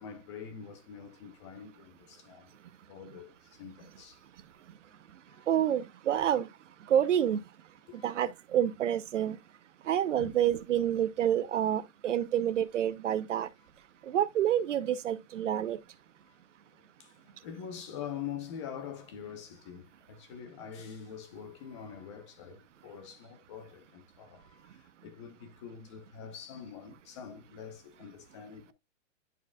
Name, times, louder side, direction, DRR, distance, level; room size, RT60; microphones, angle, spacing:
voice 1, 0.0-2.5 2.9-4.2 5.3-5.5 7.9-8.2 10.2-10.3 17.0-28.7, left 7 dB, 25° left, 0.8 m, -45 dB
voice 2, 5.5-6.5 6.9-7.4 8.0-9.4 9.9-13.5 14.1-15.8, right 10 dB, 65° right, 0.9 m, -28 dB
11.0 x 4.8 x 2.3 m
hypercardioid pair, 170°, 39 cm